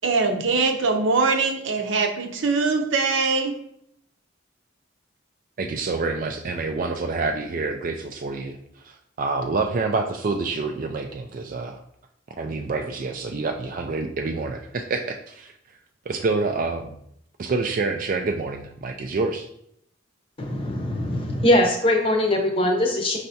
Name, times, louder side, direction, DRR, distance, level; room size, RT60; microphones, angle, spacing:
voice 1, 0.0-3.5, right 4 dB, 80° right, 4 dB, 0.7 m, -22 dB
voice 2, 5.6-8.6 8.8-11.8 12.4-15.5 16.1-17.0 17.4-19.5, right 3 dB, 45° right, 4 dB, 0.3 m, -27 dB
voice 3, 20.4-23.2, left 1 dB, 30° left, 3 dB, 0.7 m, -21 dB
5.5 x 3.3 x 2.7 m, 0.72 s
head